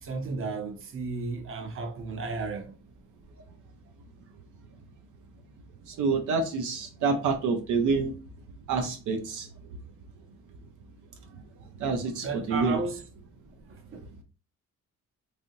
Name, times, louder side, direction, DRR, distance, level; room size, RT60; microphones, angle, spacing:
voice 1, 0.0-2.7 12.2-13.0 13.7-14.2, right 4 dB, 45° right, 0.8 m, -34 dB
voice 2, 6.0-8.1 8.7-9.5 11.8-12.8, right 4 dB, 80° right, 0.7 m, -27 dB
3.3 x 2.6 x 2.6 m
cardioid pair, 90°, 30 cm